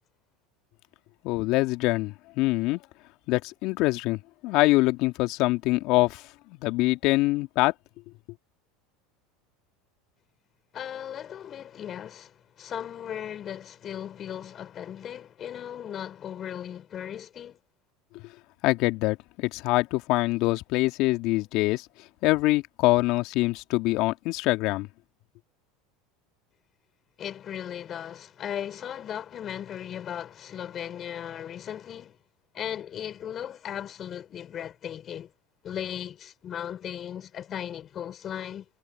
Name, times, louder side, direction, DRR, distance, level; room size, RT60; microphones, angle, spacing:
voice 1, 1.2-2.8 3.3-6.2 6.6-7.7 18.6-21.9 22.2-24.9, left 20 dB, 60° left, 2.5 m, -24 dB
voice 2, 10.7-17.6 27.2-32.2 32.5-35.3 35.6-38.7, left 9 dB, 40° left, 6.1 m, -37 dB
hypercardioid pair, 90°, 0 cm